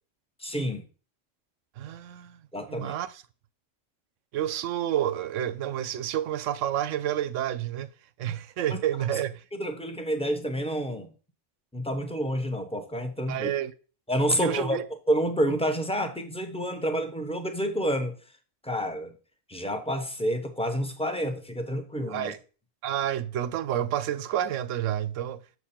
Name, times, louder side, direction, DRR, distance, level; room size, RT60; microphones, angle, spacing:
voice 1, 0.4-0.8 2.5-2.9 9.5-11.1 11.7-13.5 14.1-14.8 15.1-18.1 18.6-19.1 19.5-22.3, equal, 5° left, 0.9 m, -29 dB
voice 2, 1.8-2.4 2.7-3.2 4.3-7.9 8.2-9.4 13.3-13.7 14.3-14.8 22.1-22.4 22.8-25.4, right 11 dB, 75° right, 0.9 m, -29 dB
7.0 x 6.6 x 4.3 m
omnidirectional pair, 1.3 m